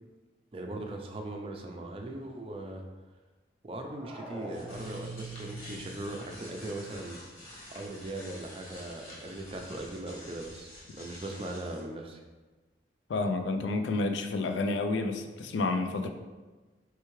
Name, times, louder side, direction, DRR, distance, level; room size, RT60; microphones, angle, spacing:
voice 1, 0.5-2.8 3.6-7.2 7.7-12.2, right 2 dB, 30° right, 2 dB, 0.4 m, -39 dB
sound 1, 3.8-5.4, right 1 dB, ahead, 0.7 m, -45 dB
sound 2, 4.3-11.8, equal, 50° left, 1.3 m, -47 dB
voice 2, 13.1-16.1, left 3 dB, 90° left, 6 dB, 0.4 m, -30 dB
4.6 x 3.3 x 3.1 m, 1.3 s
head